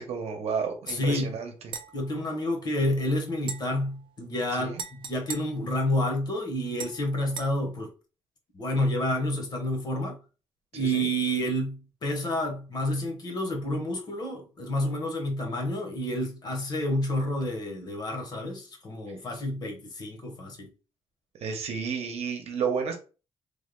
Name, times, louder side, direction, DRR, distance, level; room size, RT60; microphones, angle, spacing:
voice 1, 0.0-1.5 4.6-4.8 10.7-11.1 21.4-23.0, right 6 dB, 65° right, 0.8 m, -31 dB
voice 2, 0.9-1.3 1.9-7.9 8.5-10.2 10.7-20.7, left 1 dB, 35° left, 0.9 m, -29 dB
sound 1, 0.9-1.0 1.7-3.0 3.4-6.3 6.8-7.5, right 6 dB, 45° right, 0.5 m, -42 dB
3.4 x 2.2 x 3.7 m
wide cardioid pair, 175°, 11 cm